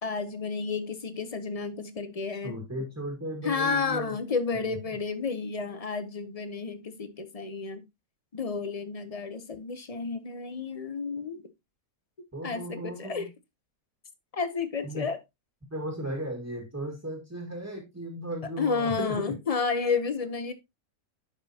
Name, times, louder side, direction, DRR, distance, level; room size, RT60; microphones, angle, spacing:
voice 1, 0.0-2.6 3.4-7.9 8.3-11.5 12.4-13.3 14.3-15.2 18.6-20.5, left 5 dB, 35° left, 0.6 m, -31 dB
voice 2, 2.4-4.1 4.6-4.7 12.3-13.3 14.8-15.1 15.7-19.3, right 1 dB, 10° right, 1.7 m, -36 dB
10.0 x 6.0 x 2.8 m
omnidirectional pair, 1.7 m